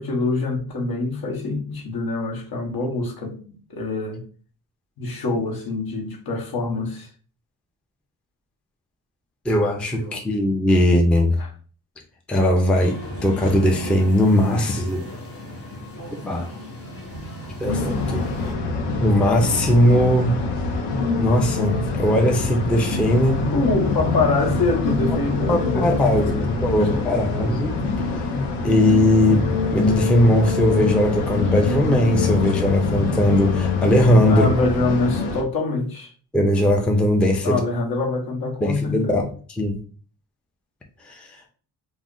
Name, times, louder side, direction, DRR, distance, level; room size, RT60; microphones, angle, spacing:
voice 1, 0.0-4.2 5.0-7.1 10.0-10.2 11.4-11.5 23.5-25.9 26.3-27.1 34.3-36.1 37.4-39.3, left 3 dB, 65° left, 0.9 m, -25 dB
voice 2, 9.5-11.4 12.3-13.0 13.2-15.1 16.2-16.5 17.6-18.2 19.0-20.3 21.2-23.5 25.5-27.8 28.2-28.3 28.6-34.5 36.3-37.6 38.6-39.2 39.6-39.8 41.1-41.3, left 1 dB, 5° left, 0.4 m, -19 dB
sound 1, 12.7-18.5, equal, 35° left, 1.0 m, -35 dB
sound 2, 17.7-35.4, left 4 dB, 85° left, 0.6 m, -24 dB
2.4 x 2.1 x 3.6 m
cardioid pair, 105°, 39 cm